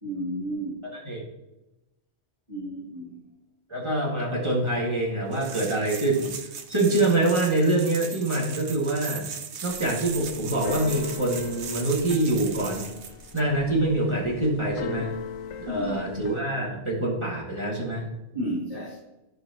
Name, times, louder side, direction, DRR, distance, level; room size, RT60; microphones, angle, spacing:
voice 1, 0.0-0.8 2.5-3.2 15.7-16.0 18.3-18.9, right 1 dB, 30° left, -7 dB, 2.4 m, -32 dB
voice 2, 0.8-1.2 3.7-6.3 6.7-9.2 9.6-12.9 13.3-15.1 15.6-18.1, right 2 dB, 25° right, -4 dB, 2.1 m, -25 dB
sound 1, 5.3-13.4, right 7 dB, 70° right, 1.0 m, -38 dB
Keyboard (musical), 9.7-16.4, left 7 dB, 85° left, 1.0 m, -39 dB
12.5 x 4.8 x 3.0 m, 0.96 s
omnidirectional pair, 1.2 m